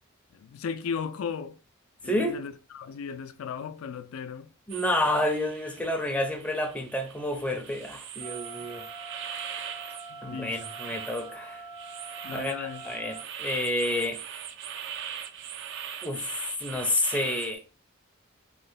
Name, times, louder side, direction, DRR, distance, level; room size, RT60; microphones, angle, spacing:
voice 1, 0.3-1.6 2.0-4.5 10.1-10.6 12.2-12.8, left 6 dB, 85° left, 0.3 m, -36 dB
voice 2, 2.1-2.4 4.7-8.8 10.2-11.6 12.3-14.2 16.0-17.6, left 1 dB, 5° left, 0.4 m, -29 dB
sound 1, 4.7-17.5, right 8 dB, 60° right, 0.4 m, -41 dB
sound 2, 8.2-13.2, right 3 dB, 80° right, 1.2 m, -44 dB
3.1 x 2.1 x 3.8 m
head